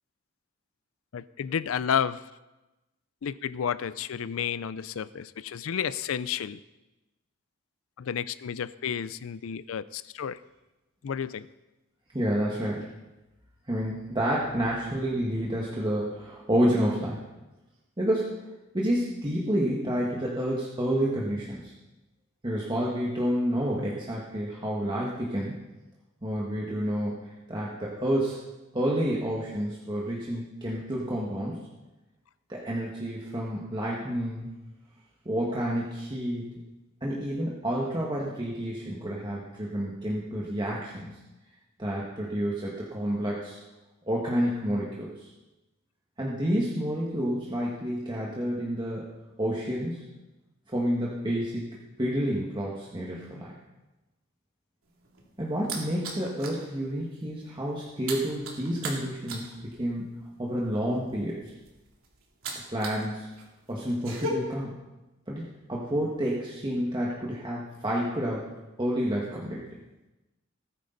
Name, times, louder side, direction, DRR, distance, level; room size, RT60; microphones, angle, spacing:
voice 1, 1.1-2.2 3.2-6.6 8.0-10.4 11.0-11.5, left 8 dB, 80° left, 16 dB, 0.4 m, -31 dB
voice 2, 12.1-12.9 13.7-17.2 18.0-18.3 18.7-21.7 22.4-25.6 26.2-28.5 28.7-31.6 32.5-34.5 35.3-36.5 37.0-41.0 41.8-43.6 44.1-45.3 46.2-49.1 49.4-50.1 50.7-51.7 52.0-53.6 55.4-59.5 59.8-60.1 60.4-61.4 62.7-63.3 63.7-64.7 65.3-68.5 68.8-69.6, equal, 25° right, -4 dB, 1.6 m, -29 dB
sound 1, 54.8-56.6 57.0-57.2 57.5-63.0 63.3-64.3, right 3 dB, 85° right, 2.7 m, -38 dB
18.5 x 10.0 x 4.0 m, 1.0 s
head